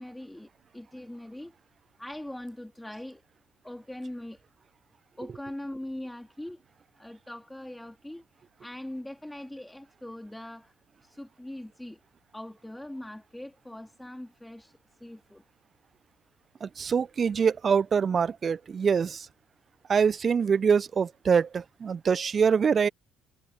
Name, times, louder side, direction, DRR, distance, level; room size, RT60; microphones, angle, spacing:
voice 1, 0.0-1.5 2.0-3.2 3.6-4.4 5.2-6.6 7.0-8.2 8.6-10.7 11.0-12.0 12.3-15.4, left 1 dB, 5° left, 3.8 m, -41 dB
voice 2, 16.6-19.3 19.9-22.9, right 6 dB, 40° right, 0.8 m, -24 dB
hypercardioid pair, 55°, 0 cm